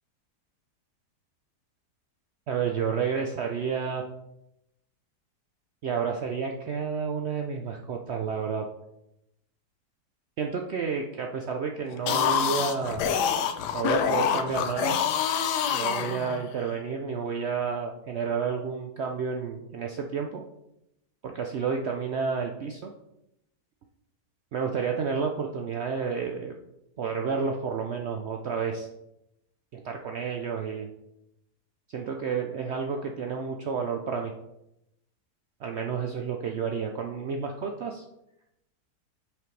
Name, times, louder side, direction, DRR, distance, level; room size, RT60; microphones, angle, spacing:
voice 1, 2.5-4.0 5.8-8.6 10.4-13.0 13.7-15.0 15.7-20.4 21.2-22.9 24.5-26.5 27.0-28.9 29.7-30.9 31.9-34.3 35.6-38.0, right 6 dB, 75° right, 3 dB, 0.6 m, -30 dB
sound 1, 11.9-16.7, left 8 dB, 85° left, 1.2 m, -26 dB
7.6 x 5.0 x 3.2 m, 0.84 s
omnidirectional pair, 1.8 m